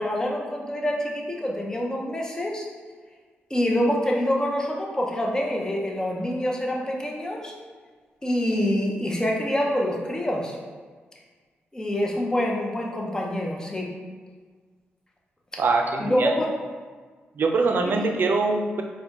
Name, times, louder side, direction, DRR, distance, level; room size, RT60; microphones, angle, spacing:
voice 1, 0.0-2.7 3.5-7.5 8.2-10.6 11.7-13.9 16.0-16.5 17.8-18.0, left 1 dB, 15° left, -1 dB, 0.6 m, -26 dB
voice 2, 15.6-16.3 17.4-18.8, right 3 dB, 55° right, 4 dB, 0.4 m, -23 dB
4.1 x 2.2 x 2.9 m, 1.5 s
cardioid pair, 70°, 4 cm